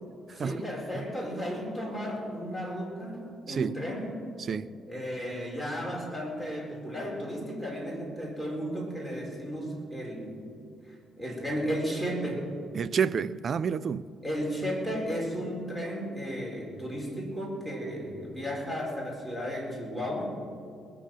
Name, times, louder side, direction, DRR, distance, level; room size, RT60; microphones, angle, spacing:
voice 1, 0.3-4.2 4.7-10.4 11.2-12.5 14.2-20.3, equal, 5° right, 4.5 m, -34 dB
voice 2, 12.7-14.0, right 6 dB, 50° right, 0.4 m, -29 dB
21.0 x 7.0 x 7.7 m
cardioid pair, 90°, 0 cm